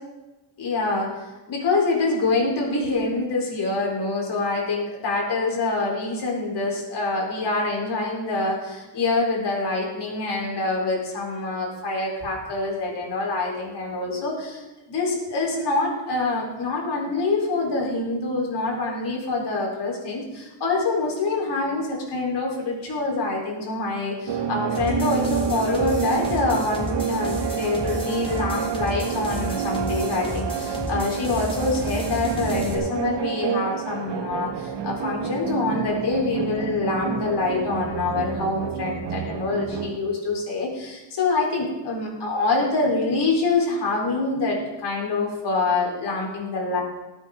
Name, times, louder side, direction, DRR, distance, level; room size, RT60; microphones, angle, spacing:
voice 1, 0.6-46.8, left 3 dB, 70° left, -1 dB, 4.4 m, -25 dB
sound 1, 24.3-40.0, right 7 dB, 85° right, 1.1 m, -29 dB
sound 2, 24.7-32.7, left 1 dB, 15° left, 2.6 m, -32 dB
19.5 x 9.0 x 3.9 m, 1.1 s
cardioid pair, 125°, 42 cm